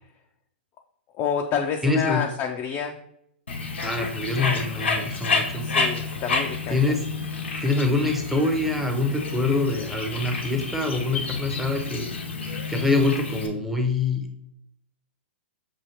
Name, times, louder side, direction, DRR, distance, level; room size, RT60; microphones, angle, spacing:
voice 1, 1.1-3.0 5.6-6.8, left 7 dB, 30° left, 2 dB, 0.4 m, -28 dB
voice 2, 1.8-2.2 3.8-5.6 6.7-7.1 7.6-12.1 12.7-14.3, left 3 dB, 5° right, 3 dB, 0.7 m, -25 dB
Bird, 3.5-13.5, left 4 dB, 85° left, 0.9 m, -30 dB
7.0 x 2.5 x 2.8 m, 0.76 s
hypercardioid pair, 120°, 6 cm